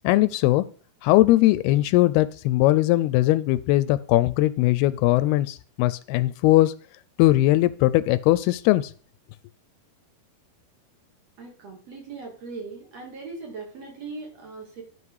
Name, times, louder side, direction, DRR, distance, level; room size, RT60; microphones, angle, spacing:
voice 1, 0.0-0.7 1.0-6.7 7.2-8.9, left 17 dB, 85° left, 16 dB, 2.5 m, -20 dB
voice 2, 11.4-14.8, right 4 dB, 45° right, 1 dB, 3.0 m, -39 dB
11.5 x 5.4 x 4.7 m, 0.42 s
omnidirectional pair, 4.6 m